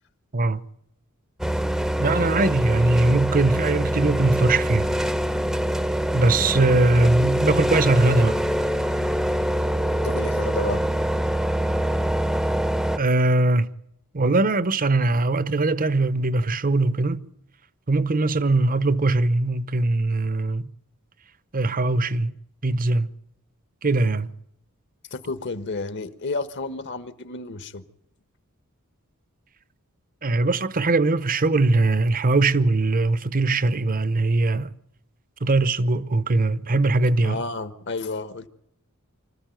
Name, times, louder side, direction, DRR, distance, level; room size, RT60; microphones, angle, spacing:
voice 1, 0.3-0.6 2.0-4.9 6.1-8.4 13.0-13.7 14.1-17.2 17.9-20.7 21.5-22.3 22.6-23.1 23.8-24.3 30.2-34.7 35.4-37.4, right 2 dB, 40° right, 0.8 m, -21 dB
sound 1, 1.4-13.0, equal, ahead, 0.7 m, -24 dB
voice 2, 10.0-10.8 25.1-27.8 37.2-38.5, left 3 dB, 55° left, 1.3 m, -31 dB
25.5 x 14.0 x 9.1 m
head